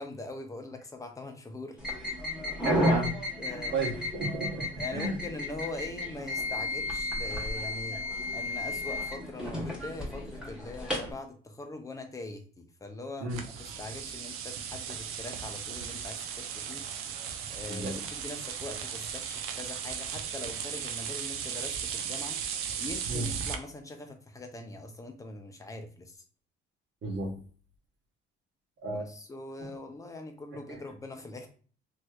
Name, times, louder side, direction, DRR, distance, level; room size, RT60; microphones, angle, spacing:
voice 1, 0.0-1.8 2.1-2.4 3.4-3.9 4.8-8.0 8.3-13.3 13.6-16.8 17.5-22.4 22.8-26.2 28.9-31.5, left 2 dB, 15° left, 5 dB, 0.6 m, -42 dB
sound 1, 1.8-11.1, left 2 dB, 5° right, 1.1 m, -33 dB
voice 2, 2.6-3.1 3.5-5.2 13.2-13.4 17.7-18.0 23.1-23.3 27.0-27.4 28.8-29.1 30.7-30.8, right 3 dB, 60° right, 0 dB, 1.1 m, -32 dB
sound 2, 13.3-23.6, right 8 dB, 85° right, 0.5 m, -36 dB
3.2 x 2.9 x 2.3 m, 0.41 s
cardioid pair, 130°, 21 cm